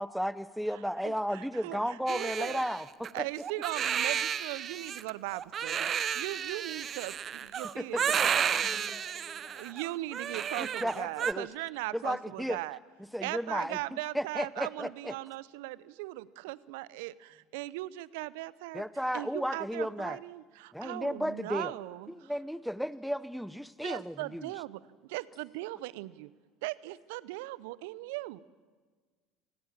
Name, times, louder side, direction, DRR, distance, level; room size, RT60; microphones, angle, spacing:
voice 1, 0.0-3.3 7.8-8.3 10.6-11.5 11.9-12.6 13.1-15.1 18.7-20.2 20.7-21.7 22.1-24.5, equal, ahead, 17 dB, 1.0 m, -34 dB
voice 2, 1.0-2.6 3.1-5.9 6.1-8.3 9.6-12.8 13.2-18.8 19.1-22.1 23.8-24.8 25.1-26.3 26.6-28.4, right 19 dB, 70° right, 20 dB, 0.7 m, -39 dB
Crying sobbing, 2.1-11.3, right 8 dB, 40° right, 0.9 m, -32 dB
voice 3, 8.6-9.8 17.3-17.4 21.8-22.0 24.0-24.1, left 2 dB, 30° left, 3 dB, 7.9 m, -53 dB
28.0 x 20.5 x 7.5 m, 1.5 s
hypercardioid pair, 65°, 0 cm